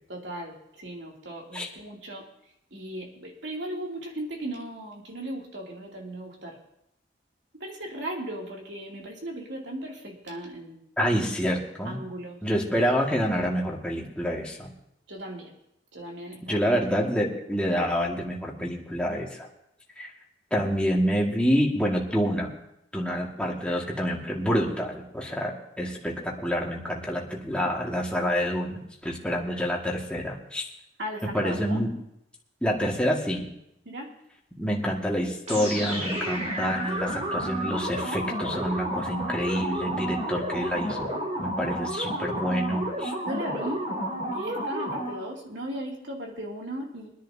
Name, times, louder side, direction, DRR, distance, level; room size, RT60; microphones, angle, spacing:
voice 1, 0.1-2.3 2.7-6.6 7.5-10.8 11.2-11.5 11.8-12.4 15.1-15.5 15.9-16.6 31.0-31.9 33.8-34.1 43.2-43.9 44.2-47.1, right 1 dB, 75° right, -1 dB, 2.8 m, -37 dB
voice 2, 11.0-12.0 12.4-14.7 16.5-19.5 20.0-20.1 20.5-22.5 22.9-30.6 31.3-31.9 32.6-33.4 34.6-41.1 41.4-43.1, equal, 5° left, -3 dB, 1.9 m, -27 dB
sound 1, 35.5-45.3, right 1 dB, 40° right, 2.9 m, -31 dB
24.0 x 10.5 x 2.8 m, 0.80 s
head